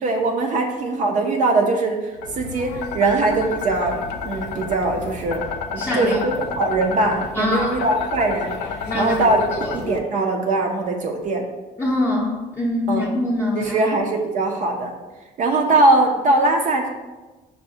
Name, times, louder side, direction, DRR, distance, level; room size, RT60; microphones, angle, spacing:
voice 1, 0.0-4.0 4.2-5.4 5.7-11.4 12.9-13.1 13.6-14.9 15.4-16.9, right 2 dB, 50° right, 2 dB, 0.4 m, -21 dB
sound 1, 2.2-10.0, left 6 dB, 75° left, 0.4 m, -30 dB
voice 2, 5.8-6.2 7.4-7.8 8.9-9.1 9.6-9.7 11.8-13.9, left 1 dB, 10° left, -7 dB, 0.6 m, -23 dB
5.5 x 2.0 x 2.6 m, 1.2 s
cardioid pair, 110°, 17 cm